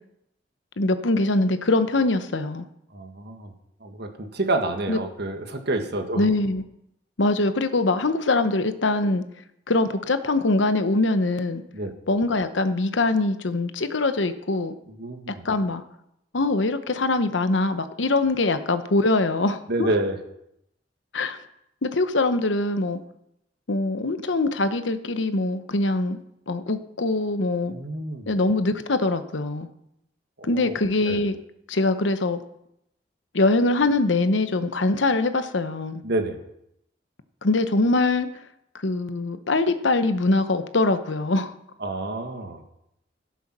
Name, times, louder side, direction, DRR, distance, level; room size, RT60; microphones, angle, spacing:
voice 1, 0.8-2.7 4.9-5.0 6.2-6.6 7.2-9.2 9.7-11.6 12.1-14.7 15.4-15.8 16.3-19.9 21.1-21.4 21.8-23.0 23.7-26.2 26.5-27.7 28.3-29.7 30.4-31.4 31.7-32.4 33.3-36.0 37.4-38.3 38.8-41.5, left 2 dB, 80° left, 10 dB, 0.9 m, -23 dB
voice 2, 2.9-3.5 3.8-6.3 11.7-11.9 14.9-15.4 19.7-20.2 27.6-28.3 30.4-30.8 31.0-31.2 36.0-36.4 41.8-42.6, right 2 dB, 65° right, 5 dB, 1.7 m, -28 dB
16.0 x 7.0 x 6.0 m, 0.80 s
head